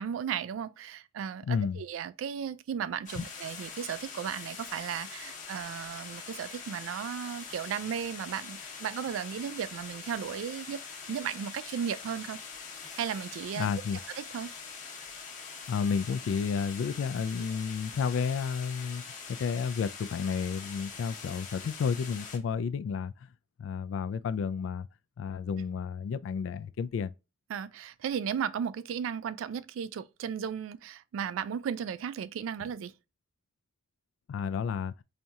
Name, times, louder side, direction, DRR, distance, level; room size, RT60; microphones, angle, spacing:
voice 1, 0.0-10.8 11.1-12.4 13.0-13.7 14.2-14.5 27.5-32.9, right 8 dB, 90° right, 0.3 m, -35 dB
voice 2, 1.5-1.8 3.2-3.3 13.6-14.0 15.7-19.0 19.3-23.1 23.6-24.9 25.2-27.1 34.3-34.9, left 6 dB, 75° left, 0.3 m, -31 dB
sound 1, 3.1-22.4, left 5 dB, 40° left, 0.9 m, -44 dB
4.3 x 2.7 x 2.3 m
head